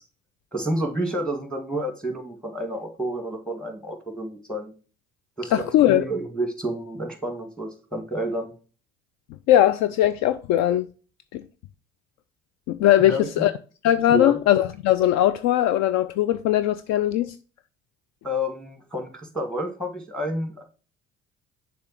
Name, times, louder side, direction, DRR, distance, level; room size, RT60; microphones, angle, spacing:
voice 1, 0.5-4.7 5.4-8.5 13.0-13.5 14.1-14.4 18.2-20.6, equal, ahead, 2.0 m, -30 dB
voice 2, 5.5-6.0 9.5-10.9 11.3-11.4 12.7-13.5 13.8-17.4, left 12 dB, 55° left, 0.4 m, -20 dB
6.7 x 3.3 x 5.9 m
hypercardioid pair, 55°, 33 cm